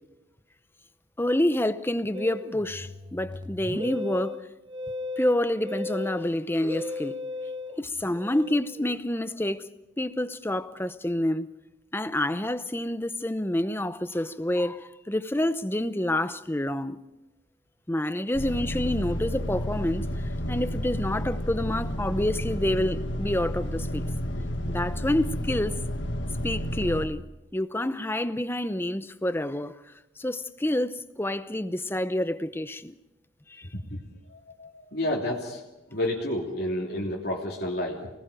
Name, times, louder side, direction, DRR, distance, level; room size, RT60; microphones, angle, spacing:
voice 1, 1.2-4.4 5.2-7.2 7.8-9.7 10.0-11.5 11.9-17.0 17.9-20.1 20.5-24.1 24.7-25.8 26.4-27.2 27.5-29.8 30.2-32.9 33.5-33.7, left 1 dB, 10° left, 0.8 m, -28 dB
Musical instrument, 2.1-8.9, left 2 dB, 25° right, 1.2 m, -36 dB
sound 1, 18.3-27.1, equal, 75° left, 1.7 m, -31 dB
voice 2, 34.3-35.6 35.9-38.1, left 1 dB, 55° left, 3.2 m, -30 dB
29.0 x 20.0 x 5.2 m
head